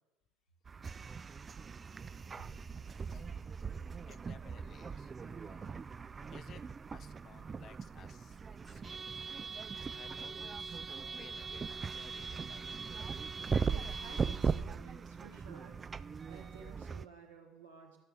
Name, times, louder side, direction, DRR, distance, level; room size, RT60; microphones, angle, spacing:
sound 1, 0.6-17.1, right 5 dB, 30° right, 0.3 m, -39 dB
voice 1, 2.4-2.8 3.1-3.3 4.1-5.9 6.3-9.2 9.9-12.8, left 8 dB, 45° left, 13 dB, 0.6 m, -59 dB
voice 2, 13.7-15.8 16.3-18.0, right 6 dB, 80° right, 0 dB, 1.7 m, -54 dB
12.5 x 6.7 x 6.2 m, 1.1 s
figure-of-eight pair, 55°, 0 cm